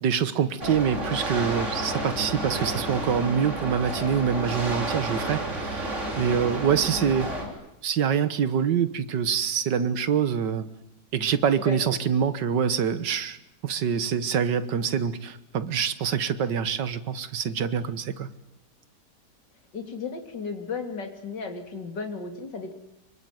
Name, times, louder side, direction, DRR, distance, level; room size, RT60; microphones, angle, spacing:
voice 1, 0.0-7.3 7.8-10.7 11.1-13.4 13.6-18.3, right 7 dB, 80° right, 13 dB, 1.9 m, -25 dB
sound 1, 0.6-7.5, right 1 dB, 40° right, 4.5 m, -31 dB
voice 2, 6.7-7.6 11.7-12.0 19.7-22.7, left 4 dB, 80° left, 5 dB, 3.7 m, -35 dB
25.0 x 24.0 x 9.4 m, 0.80 s
omnidirectional pair, 1.9 m